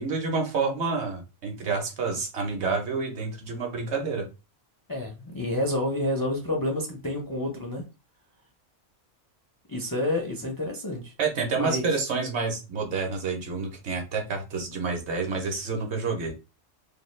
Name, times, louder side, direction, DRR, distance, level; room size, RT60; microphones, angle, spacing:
voice 1, 0.0-4.3 11.2-16.3, right 4 dB, 60° right, 2 dB, 1.0 m, -28 dB
voice 2, 4.9-7.8 9.7-11.1 11.5-11.9, left 1 dB, 35° left, 1 dB, 0.3 m, -29 dB
2.6 x 2.3 x 3.1 m, 0.29 s
omnidirectional pair, 1.3 m